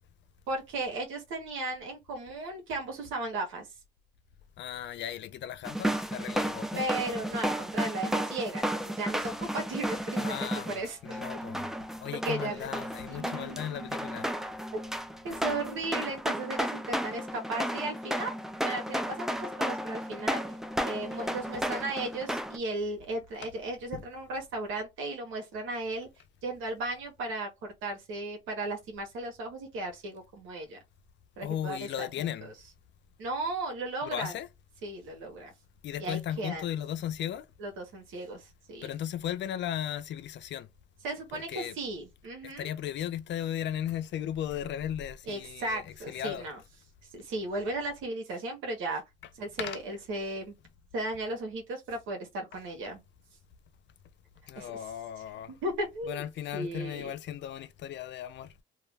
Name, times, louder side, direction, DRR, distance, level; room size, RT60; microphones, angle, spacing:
voice 1, 0.5-3.7 6.8-11.2 12.2-12.7 13.1-13.9 15.2-18.3 18.6-20.4 20.8-26.1 26.4-30.8 31.4-32.1 32.4-32.5 33.2-34.3 34.8-35.5 36.0-36.6 37.6-38.9 41.0-42.7 45.3-46.6 47.1-49.0 49.3-50.5 50.9-53.0 54.6-54.7 55.6-56.3 56.5-57.1, right 2 dB, 85° right, 0.8 m, -35 dB
voice 2, 4.6-6.9 10.2-11.7 12.0-14.3 23.4-23.5 23.9-24.1 31.4-32.5 34.0-34.5 35.8-37.5 38.8-40.7 41.3-41.8 42.4-46.5 49.6-49.8 54.5-55.5 56.0-58.5, left 10 dB, 65° left, 0.5 m, -36 dB
sound 1, 5.6-22.6, equal, ahead, 0.3 m, -33 dB
2.3 x 2.1 x 3.2 m
cardioid pair, 90°, 20 cm